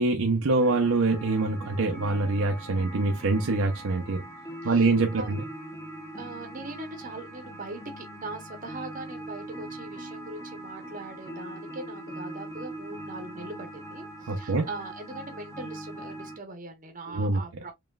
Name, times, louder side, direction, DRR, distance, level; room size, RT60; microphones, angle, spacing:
voice 1, 0.0-4.2 4.6-5.4 14.3-14.7 17.1-17.4, right 3 dB, 70° right, 0.7 m, -25 dB
sound 1, 0.6-16.4, right 1 dB, 15° left, 0.9 m, -41 dB
voice 2, 6.1-17.7, right 2 dB, 40° right, 0.9 m, -41 dB
5.2 x 3.0 x 2.3 m
head